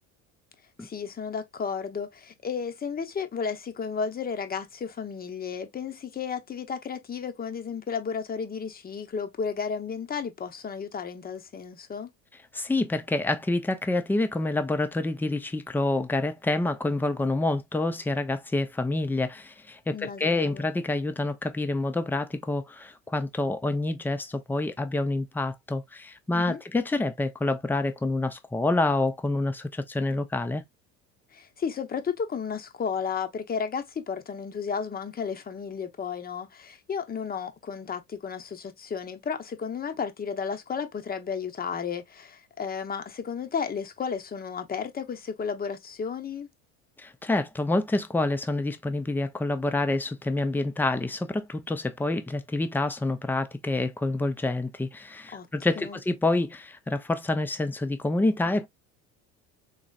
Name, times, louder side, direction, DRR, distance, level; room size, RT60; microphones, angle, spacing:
voice 1, 0.8-12.1 19.9-20.7 26.3-26.6 31.3-46.5 55.3-55.5 55.8-56.0, left 6 dB, 25° left, 0.9 m, -33 dB
voice 2, 12.5-30.6 47.0-58.7, left 2 dB, 5° left, 0.6 m, -27 dB
4.0 x 3.0 x 2.4 m
supercardioid pair, 105°, 34 cm